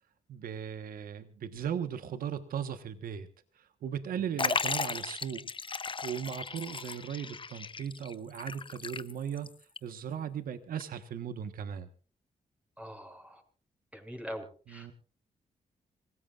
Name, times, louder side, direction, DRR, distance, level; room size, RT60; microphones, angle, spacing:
voice 1, 0.3-3.3 3.5-9.5 9.8-11.9 14.7-14.9, right 8 dB, 75° right, 10 dB, 1.4 m, -37 dB
Liquid, 4.4-9.5 9.8-9.9 10.8-10.9, left 5 dB, 35° left, 0.8 m, -35 dB
voice 2, 12.8-13.4 13.9-14.9, equal, 10° right, 3 dB, 6.8 m, -44 dB
26.5 x 17.0 x 2.5 m, 0.38 s
supercardioid pair, 50°, 15 cm